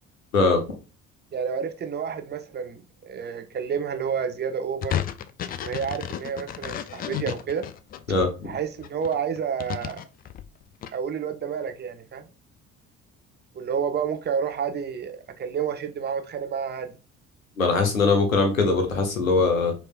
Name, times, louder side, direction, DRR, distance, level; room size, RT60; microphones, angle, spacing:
voice 1, 1.3-5.0 5.6-7.7 8.5-10.0 10.9-12.3 13.5-17.0, right 7 dB, 25° right, 0.7 m, -30 dB
sound 1, 4.8-8.3 8.8-10.9, left 10 dB, 25° left, 0.3 m, -32 dB
voice 2, 8.1-8.5 17.6-19.7, left 3 dB, 80° left, 1.0 m, -21 dB
4.7 x 3.1 x 2.3 m
figure-of-eight pair, 50°, 39 cm